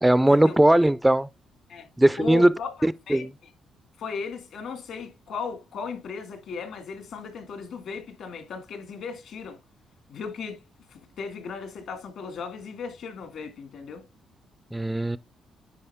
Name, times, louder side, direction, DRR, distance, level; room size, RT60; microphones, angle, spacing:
voice 1, 0.0-1.3 2.0-2.5 2.8-3.3 14.7-15.2, right 1 dB, 10° right, 0.3 m, -19 dB
voice 2, 2.2-3.3 4.0-9.6 10.1-10.6 10.9-14.0, left 5 dB, 75° left, 2.0 m, -36 dB
10.0 x 4.2 x 3.5 m
cardioid pair, 105°, 0 cm